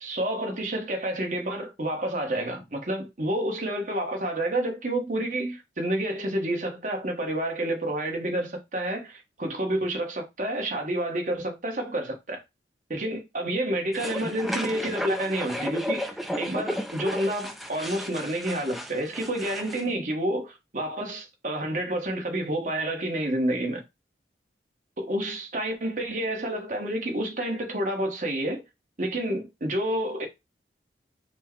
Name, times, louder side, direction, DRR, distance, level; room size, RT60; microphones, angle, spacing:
voice 1, 0.0-12.4 12.9-23.8 25.0-28.6 29.0-30.3, right 1 dB, 45° right, 1.1 m, -29 dB
sound 1, 13.9-19.8, equal, ahead, 0.3 m, -34 dB
4.4 x 2.2 x 4.4 m
head